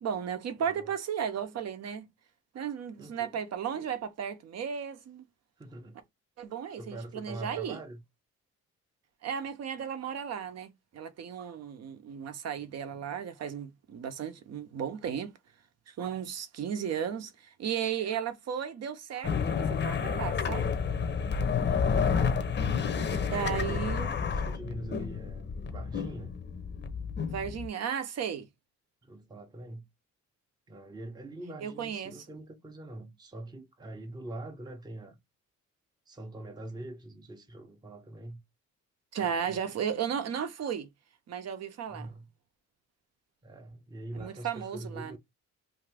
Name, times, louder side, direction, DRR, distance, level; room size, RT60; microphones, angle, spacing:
voice 1, 0.0-2.0 2.5-5.3 6.4-7.8 9.2-15.3 15.9-20.7 23.3-24.1 27.3-28.5 31.6-32.2 39.1-40.9 41.3-42.1 44.1-45.2, right 8 dB, 55° right, 0.7 m, -35 dB
voice 2, 0.6-1.0 3.0-3.4 5.6-6.0 6.8-8.0 21.6-22.1 23.0-26.3 29.0-29.8 30.7-35.2 36.1-38.4 39.2-39.6 41.9-42.3 43.4-45.2, right 1 dB, 15° right, 0.6 m, -44 dB
sound 1, 19.2-27.7, left 6 dB, 35° left, 0.7 m, -30 dB
2.7 x 2.5 x 3.3 m
cardioid pair, 90°, 30 cm